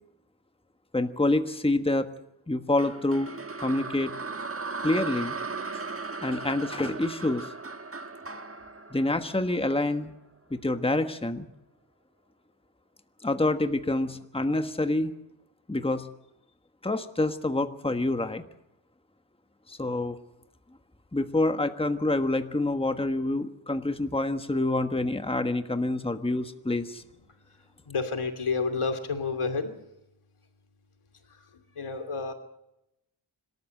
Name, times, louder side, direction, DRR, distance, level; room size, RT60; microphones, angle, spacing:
voice 1, 0.9-2.1 2.5-3.3 3.6-4.1 4.8-5.3 6.2-7.5 8.9-10.1 10.5-11.5 13.2-15.1 15.7-16.0 16.8-18.4 19.7-20.2 21.1-27.0, left 2 dB, 10° left, 8 dB, 1.4 m, -27 dB
sound 1, 2.8-10.0, right 4 dB, 30° right, 1.4 m, -37 dB
voice 2, 27.9-29.7 31.5-32.3, left 4 dB, 85° left, 8 dB, 2.8 m, -30 dB
26.0 x 13.5 x 7.7 m, 0.86 s
wide cardioid pair, 80°, 49 cm